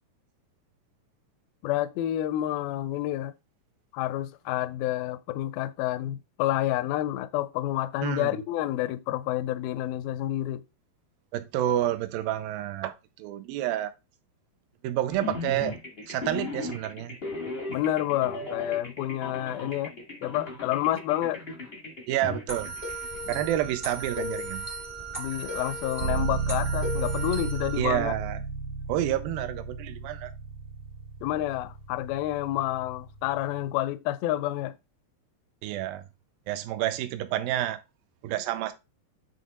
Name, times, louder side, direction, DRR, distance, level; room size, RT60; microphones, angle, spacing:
voice 1, 1.6-3.3 3.9-10.6 17.7-19.9 20.2-21.4 25.2-28.2 31.2-34.7, left 14 dB, 85° left, 2.2 m, -29 dB
voice 2, 11.3-13.9 14.8-15.7 16.1-17.1 22.1-22.7 23.3-24.6 27.8-28.4 28.9-30.3 35.6-36.0 36.5-37.8 38.2-38.7, right 12 dB, 85° right, 2.1 m, -29 dB
sound 1, 15.1-23.5, left 2 dB, 60° left, 0.6 m, -37 dB
sound 2, 22.5-27.8, right 1 dB, 35° right, 0.6 m, -36 dB
sound 3, 26.0-33.7, right 5 dB, 70° right, 2.4 m, -34 dB
9.7 x 3.2 x 4.1 m
omnidirectional pair, 4.7 m